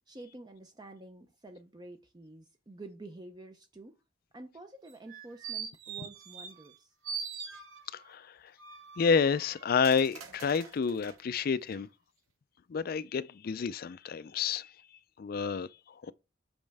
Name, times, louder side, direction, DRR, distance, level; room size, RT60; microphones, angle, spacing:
voice 1, 0.1-4.0 4.3-6.9, right 2 dB, 20° right, 0.5 m, -49 dB
sound 1, 4.9-6.8 7.0-8.1 8.6-11.2 11.7-11.8, right 6 dB, 85° right, 0.9 m, -43 dB
voice 2, 7.9-8.5 9.0-11.9 12.7-14.7 15.2-16.1, left 5 dB, 45° left, 0.3 m, -30 dB
6.3 x 5.3 x 3.4 m
head